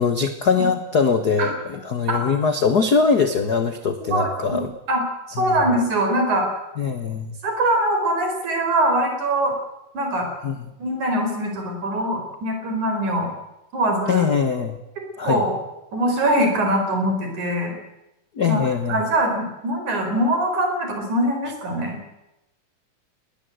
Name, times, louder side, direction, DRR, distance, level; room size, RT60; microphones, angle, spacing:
voice 1, 0.0-4.7 5.4-5.5 6.8-7.3 10.4-10.5 14.1-14.8 15.2-15.4 18.4-19.0, left 5 dB, 60° left, 8 dB, 1.0 m, -21 dB
voice 2, 4.1-4.6 4.9-5.0 5.4-6.5 7.4-9.6 9.9-10.3 10.8-13.3 13.7-14.3 15.0-15.6 15.9-17.7 18.5-18.6 18.9-22.0, right 1 dB, 65° right, 4 dB, 5.8 m, -22 dB
20.5 x 19.0 x 7.9 m, 0.93 s
omnidirectional pair, 3.6 m